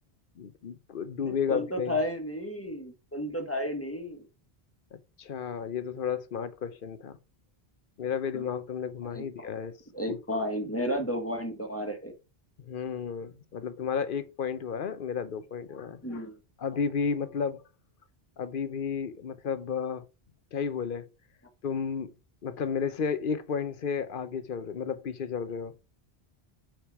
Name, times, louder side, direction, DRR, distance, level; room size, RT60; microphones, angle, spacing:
voice 1, 0.4-2.0 4.9-7.2 8.0-9.8 10.1-10.2 12.6-16.2 16.6-17.6 18.4-20.0 20.5-21.1 21.6-22.1 22.4-25.7, left 6 dB, 60° left, 0.9 m, -32 dB
voice 2, 1.2-4.2 8.3-8.4 9.1-9.5 9.9-12.1 16.0-16.3, equal, 15° left, 1.5 m, -33 dB
5.9 x 5.1 x 4.8 m
omnidirectional pair, 1.0 m